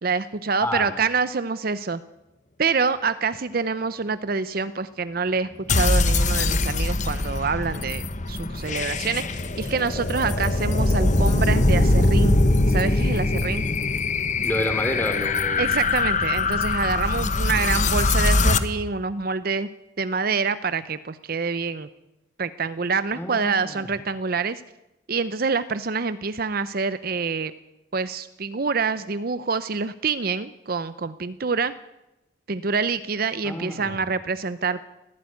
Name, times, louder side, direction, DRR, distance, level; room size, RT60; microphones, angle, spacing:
voice 1, 0.0-2.0 2.6-12.4 12.7-13.7 15.6-19.7 20.0-21.9 22.4-24.6 25.1-27.5 27.9-31.7 32.5-34.9, right 5 dB, 50° right, 14 dB, 0.6 m, -26 dB
sound 1, 5.7-18.6, left 2 dB, 40° left, 1.1 m, -22 dB
voice 2, 14.4-15.6 23.2-23.9 33.4-34.0, left 1 dB, 10° left, 6 dB, 3.0 m, -29 dB
19.5 x 15.0 x 9.5 m, 0.95 s
head